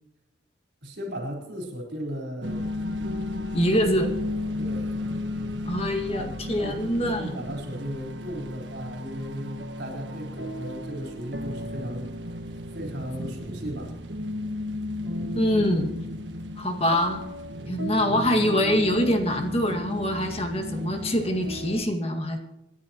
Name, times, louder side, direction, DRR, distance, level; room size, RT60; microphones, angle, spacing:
voice 1, 0.8-2.7 4.6-5.0 6.0-6.8 7.2-12.1 12.7-13.9, equal, 70° right, 1 dB, 4.1 m, -36 dB
sound 1, 2.4-21.8, left 1 dB, 90° right, 1.5 m, -34 dB
voice 2, 3.5-4.1 5.7-7.4 15.3-15.9 16.6-17.2 17.7-22.4, equal, 35° left, 4 dB, 1.9 m, -24 dB
27.5 x 10.5 x 3.0 m, 0.90 s
head